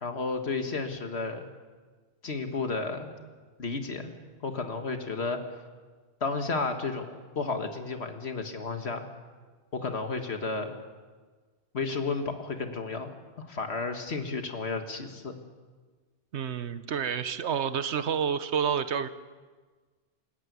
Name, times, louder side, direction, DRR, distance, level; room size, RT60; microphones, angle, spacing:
voice 1, 0.0-1.5 2.2-3.1 3.6-4.1 4.4-5.4 6.2-9.1 9.7-10.7 11.7-13.1 13.4-15.3, left 4 dB, 75° left, 6 dB, 1.9 m, -32 dB
voice 2, 16.3-19.1, right 7 dB, 90° right, 12 dB, 1.2 m, -29 dB
26.5 x 14.5 x 9.3 m, 1.4 s
omnidirectional pair, 1.1 m